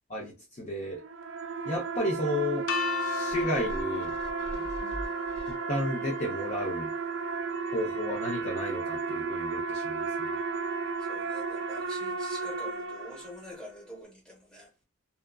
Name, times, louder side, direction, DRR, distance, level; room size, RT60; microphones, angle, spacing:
voice 1, 0.1-1.0 1.6-2.6 3.0-4.2 5.7-6.9 7.7-10.4, left 1 dB, 35° left, 0.5 m, -32 dB
sound 1, 0.9-13.6, right 5 dB, 60° right, 0.4 m, -34 dB
sound 2, 2.7-8.6, left 7 dB, 80° left, 0.5 m, -38 dB
sound 3, 3.3-6.0 6.5-6.6, equal, 50° left, 1.5 m, -43 dB
voice 2, 11.0-14.7, left 1 dB, 5° left, 1.1 m, -46 dB
2.7 x 2.4 x 2.2 m
head